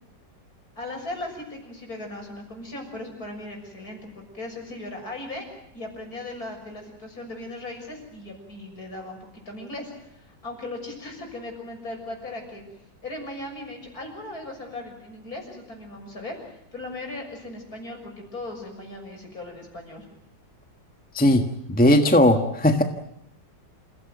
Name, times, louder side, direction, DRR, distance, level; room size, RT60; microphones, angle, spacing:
voice 1, 0.8-5.5 5.7-9.2 9.5-12.6 13.0-20.1, left 2 dB, 50° left, 2 dB, 7.0 m, -38 dB
voice 2, 21.1-22.8, left 1 dB, 5° left, 6 dB, 1.2 m, -18 dB
28.5 x 16.0 x 9.3 m, 0.78 s
omnidirectional pair, 2.0 m